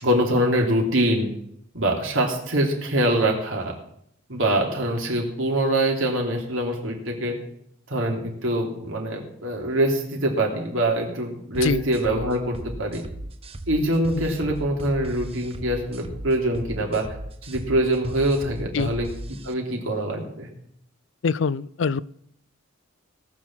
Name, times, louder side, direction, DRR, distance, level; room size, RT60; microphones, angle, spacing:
voice 1, 0.0-1.3 1.7-3.7 4.3-7.3 7.9-13.0 13.7-17.1 17.4-19.1 19.4-20.5, right 1 dB, 75° right, 0 dB, 3.2 m, -24 dB
sound 1, 11.5-19.5, right 1 dB, 30° right, 0.8 m, -37 dB
voice 2, 21.2-22.0, left 5 dB, 60° left, 20 dB, 0.4 m, -24 dB
18.5 x 6.4 x 7.4 m, 0.71 s
head